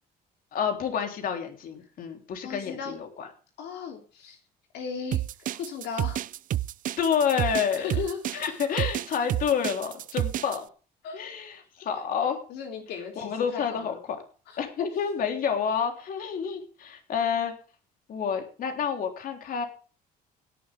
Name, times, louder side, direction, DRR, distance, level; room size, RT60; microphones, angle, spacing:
voice 1, 0.5-3.3 7.0-7.9 8.3-10.7 11.1-12.4 13.2-14.2 14.6-17.5 18.1-19.6, left 7 dB, 55° left, 5 dB, 3.6 m, -29 dB
voice 2, 2.4-3.0 3.6-4.4 4.7-6.2 7.8-8.6 11.0-11.2 12.5-14.0 14.5-14.6, left 6 dB, 80° left, 3 dB, 3.2 m, -36 dB
sound 1, 5.1-10.6, right 13 dB, 55° right, 0.5 m, -30 dB
17.5 x 11.0 x 3.5 m, 0.37 s
cardioid pair, 110°, 17 cm